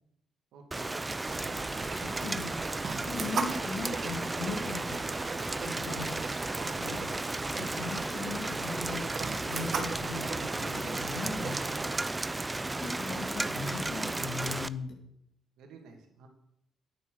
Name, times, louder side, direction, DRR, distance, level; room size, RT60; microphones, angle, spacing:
voice 1, 0.5-1.0 5.6-6.1 6.5-6.8 15.6-16.3, right 5 dB, 85° right, 3 dB, 2.5 m, -49 dB
Rain, 0.7-14.7, right 2 dB, 15° right, 0.5 m, -34 dB
sound 1, 1.2-12.0, right 5 dB, 50° right, 1.7 m, -39 dB
voice 2, 2.0-2.5 3.1-5.0 5.6-6.1 6.8-7.0 7.6-9.0 9.5-11.7 12.8-14.9, left 3 dB, 70° left, 0 dB, 3.1 m, -38 dB
9.2 x 8.9 x 6.7 m, 0.77 s
cardioid pair, 90°, 0 cm